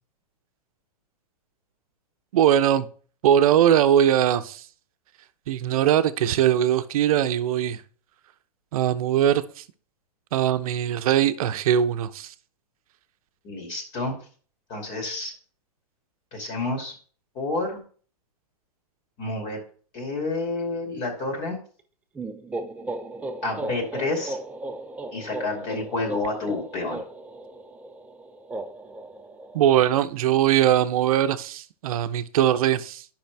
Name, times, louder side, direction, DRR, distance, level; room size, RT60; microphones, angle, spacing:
voice 1, 2.3-2.9 3.2-4.6 5.5-7.8 8.7-9.6 10.3-12.3 29.5-33.0, right 10 dB, 65° right, 0.8 m, -21 dB
voice 2, 13.4-14.2 14.7-15.3 16.3-16.9 17.3-17.8 19.2-19.6 19.9-21.6 23.4-24.4 25.1-27.0, left 2 dB, 35° left, 2.6 m, -29 dB
sound 1, 22.1-29.9, right 2 dB, 5° right, 0.5 m, -36 dB
10.5 x 5.7 x 3.4 m
hypercardioid pair, 130°, 20 cm